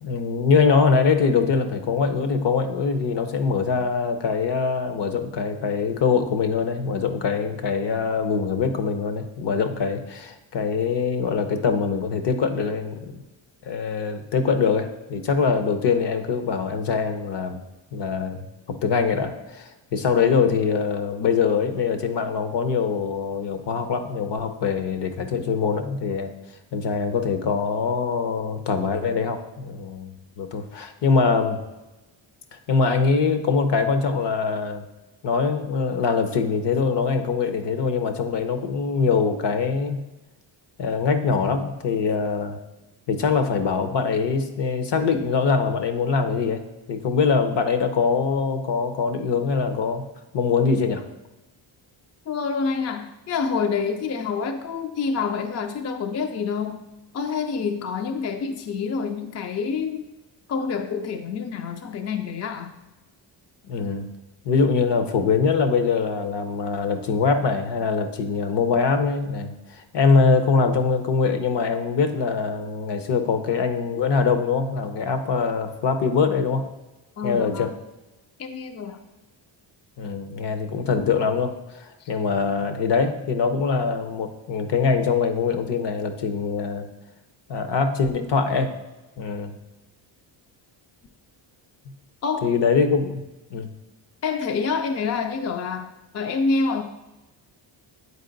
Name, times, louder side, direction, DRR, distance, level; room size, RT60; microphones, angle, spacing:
voice 1, 0.0-13.2 13.6-17.6 17.9-26.3 26.7-31.6 32.7-34.9 35.2-40.0 40.8-42.6 43.1-46.6 46.9-50.1 50.3-51.0 63.7-64.1 64.4-76.7 77.2-77.7 80.0-86.9 87.5-88.7 89.2-89.6 92.4-93.2 93.5-93.7, left 5 dB, 60° left, 8 dB, 0.9 m, -23 dB
voice 2, 52.3-56.9 57.1-60.0 60.5-62.7 77.2-77.7 78.4-79.0 82.0-82.1 92.2-92.5 94.2-95.9 96.1-96.8, left 5 dB, 35° left, 7 dB, 0.4 m, -27 dB
8.2 x 4.5 x 3.9 m, 1.0 s
cardioid pair, 135°, 47 cm